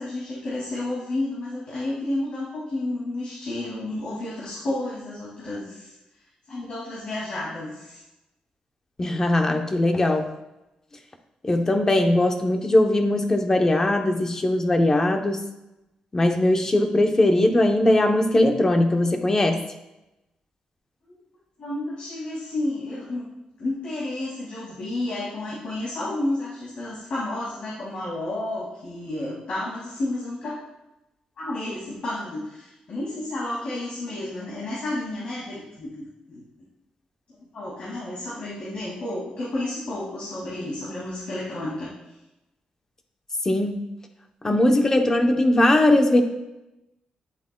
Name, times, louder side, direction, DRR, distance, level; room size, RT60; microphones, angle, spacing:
voice 1, 0.0-5.9 6.5-8.0 21.6-23.3 23.6-30.6 31.4-36.4 37.5-41.9, left 1 dB, 60° left, -7 dB, 2.2 m, -31 dB
voice 2, 9.0-10.3 11.4-15.4 16.1-19.6 43.5-43.8 44.4-46.2, left 1 dB, 20° left, 5 dB, 0.8 m, -20 dB
9.9 x 7.6 x 2.2 m, 0.95 s
wide cardioid pair, 140°, 2 cm